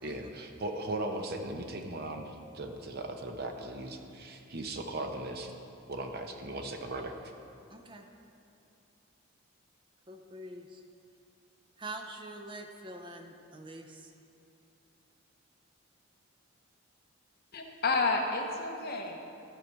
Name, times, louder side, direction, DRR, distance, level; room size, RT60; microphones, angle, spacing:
voice 1, 0.0-5.5 5.9-7.2, right 2 dB, 50° right, 4 dB, 0.8 m, -38 dB
voice 2, 7.7-8.1 10.1-10.8 11.8-14.1, right 1 dB, 25° right, 4 dB, 0.6 m, -45 dB
voice 3, 17.5-19.2, left 3 dB, 50° left, 2 dB, 1.0 m, -30 dB
13.5 x 5.0 x 6.2 m, 2.7 s
head